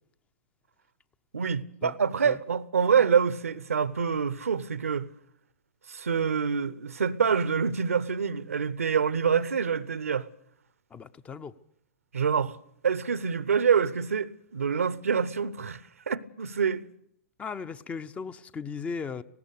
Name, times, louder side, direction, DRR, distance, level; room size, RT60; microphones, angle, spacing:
voice 1, 1.3-5.1 5.9-10.3 12.1-12.6 12.8-15.8 16.1-16.8, right 6 dB, 70° right, 0.9 m, -26 dB
voice 2, 10.9-11.5 17.4-19.2, left 5 dB, 15° left, 0.7 m, -37 dB
19.0 x 16.5 x 8.2 m
figure-of-eight pair, 105°, 8 cm